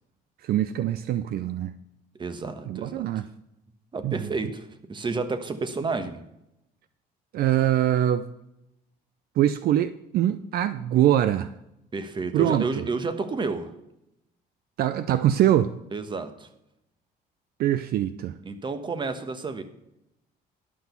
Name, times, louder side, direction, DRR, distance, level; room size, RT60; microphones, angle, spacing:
voice 1, 0.4-1.7 2.7-3.3 4.0-4.3 7.3-8.3 9.4-11.5 12.3-12.9 14.8-15.7 17.6-18.3, right 12 dB, 65° right, 0.5 m, -23 dB
voice 2, 2.2-3.1 3.9-6.2 11.9-13.7 15.9-16.5 18.4-19.6, right 3 dB, 30° right, 1.2 m, -30 dB
11.5 x 6.1 x 6.9 m
cardioid pair, 110°, 17 cm